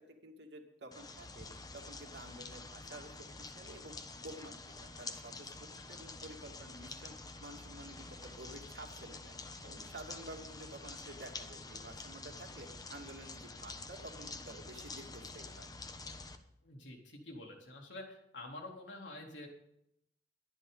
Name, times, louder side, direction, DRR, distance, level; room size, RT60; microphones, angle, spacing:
voice 1, 0.2-1.5 1.7-3.9 4.2-5.5 5.9-7.1 7.4-9.4 9.6-15.7, right 1 dB, 70° right, 2 dB, 2.5 m, -51 dB
sound 1, 0.9-16.4, left 3 dB, 20° left, 1.1 m, -48 dB
voice 2, 16.6-19.5, left 2 dB, 80° left, 0 dB, 3.6 m, -48 dB
22.0 x 10.5 x 4.0 m, 0.78 s
head